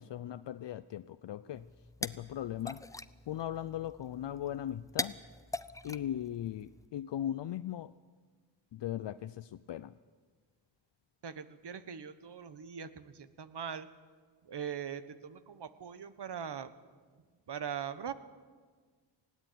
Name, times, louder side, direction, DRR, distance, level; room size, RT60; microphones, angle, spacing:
voice 1, 0.0-1.7 2.0-2.8 3.3-5.1 5.8-7.9 8.7-9.9, left 11 dB, 65° left, 13 dB, 0.6 m, -38 dB
sound 1, 1.5-6.9, left 2 dB, 5° left, 0.7 m, -43 dB
voice 2, 11.2-13.9 14.4-16.7 17.5-18.1, right 8 dB, 60° right, 13 dB, 1.3 m, -41 dB
19.0 x 16.0 x 9.3 m, 1.5 s
cardioid pair, 60°, 46 cm